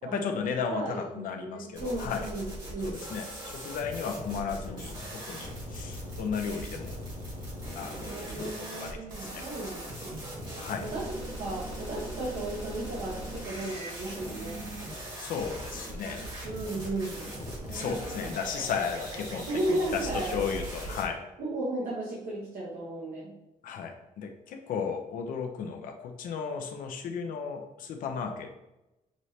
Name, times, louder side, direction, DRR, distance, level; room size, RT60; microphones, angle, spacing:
voice 1, 0.0-2.3 2.8-7.0 7.8-8.1 8.4-9.4 10.6-10.9 15.2-16.3 17.4-21.2 23.6-28.5, left 6 dB, 80° left, 4 dB, 0.6 m, -35 dB
voice 2, 0.7-3.0 8.1-10.1 10.8-14.6 16.4-17.2 17.7-18.3 19.5-20.5 21.4-23.3, right 2 dB, 70° right, -6 dB, 1.1 m, -35 dB
sound 1, 1.7-21.0, right 1 dB, 35° right, 1.6 m, -39 dB
6.2 x 2.7 x 3.2 m, 0.96 s
wide cardioid pair, 160°, 14 cm